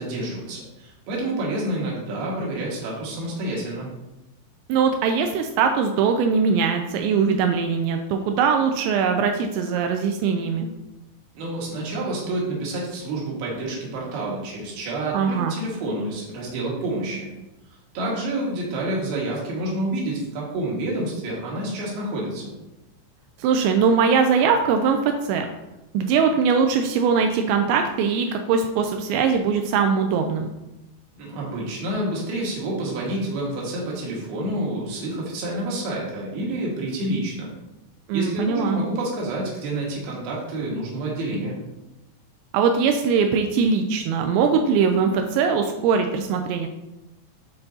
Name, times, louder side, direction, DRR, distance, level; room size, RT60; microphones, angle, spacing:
voice 1, 0.0-3.9 11.3-17.3 17.9-22.5 31.1-37.5 38.1-41.6, right 1 dB, 60° right, -3 dB, 3.2 m, -28 dB
voice 2, 4.7-10.7 15.1-15.5 23.4-25.5 25.9-30.5 38.1-38.8 42.5-46.7, right 6 dB, 85° right, 5 dB, 2.6 m, -21 dB
11.5 x 4.5 x 2.8 m, 0.96 s
omnidirectional pair, 5.7 m